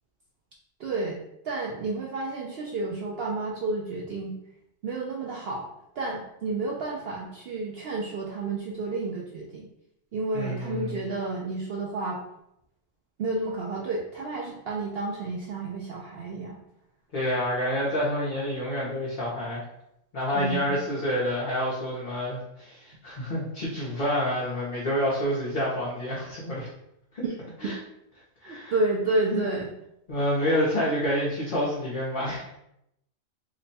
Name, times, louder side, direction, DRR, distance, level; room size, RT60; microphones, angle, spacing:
voice 1, 0.8-4.3 4.8-5.7 6.0-9.7 10.1-12.2 13.2-16.6 20.3-20.8 27.2-27.3 27.6-27.7 28.4-29.7, right 3 dB, 65° right, -2 dB, 0.6 m, -31 dB
voice 2, 10.3-11.0 17.1-19.6 20.1-26.7 27.1-27.2 27.6-27.7 28.4-28.7 29.3-29.4 30.1-32.6, equal, 45° left, -7 dB, 0.8 m, -28 dB
2.9 x 2.2 x 4.0 m, 0.82 s
omnidirectional pair, 1.4 m